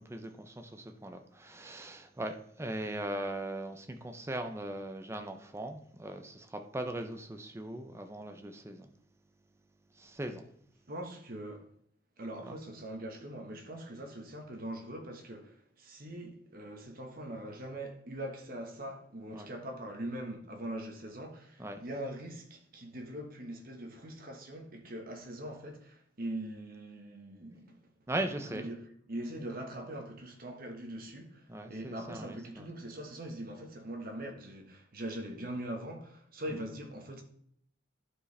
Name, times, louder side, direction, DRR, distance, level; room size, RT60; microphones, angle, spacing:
voice 1, 0.0-8.9 9.9-10.4 12.4-12.6 19.3-19.5 21.6-21.8 28.1-28.7 31.5-32.7, right 1 dB, 15° right, 0.6 m, -39 dB
voice 2, 10.9-11.7 12.2-27.9 28.5-37.2, right 1 dB, 50° right, 1.3 m, -42 dB
11.5 x 4.7 x 3.3 m
head